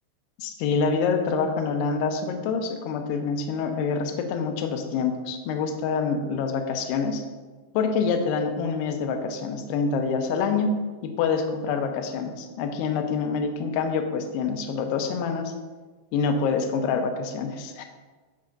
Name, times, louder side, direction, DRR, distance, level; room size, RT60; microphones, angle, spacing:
voice 1, 0.4-7.2 7.7-10.7 11.0-15.5 16.1-17.8, left 5 dB, 80° left, 5 dB, 2.5 m, -26 dB
14.0 x 6.2 x 2.6 m, 1.3 s
omnidirectional pair, 5.5 m